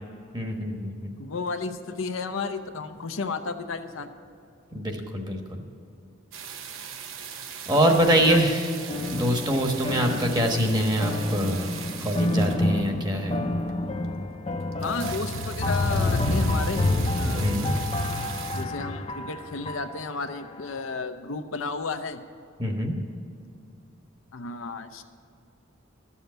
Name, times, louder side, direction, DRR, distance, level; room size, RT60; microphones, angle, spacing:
voice 1, 0.3-1.1 4.7-5.6 7.7-8.7 9.1-11.8 12.0-13.4 17.4-17.7 22.6-23.0, equal, 20° right, 3 dB, 1.2 m, -24 dB
voice 2, 1.2-4.1 7.7-8.6 14.8-16.9 17.2-17.8 18.5-22.2 24.3-25.0, left 4 dB, 85° left, 8 dB, 0.7 m, -33 dB
sound 1, 6.3-13.1 13.7-13.8 14.0-14.1 14.3-14.4 14.6-18.6, right 7 dB, 85° right, 0.9 m, -39 dB
sound 2, 8.9-20.3, left 2 dB, 30° left, 0.6 m, -28 dB
12.5 x 7.2 x 8.0 m, 2.5 s
head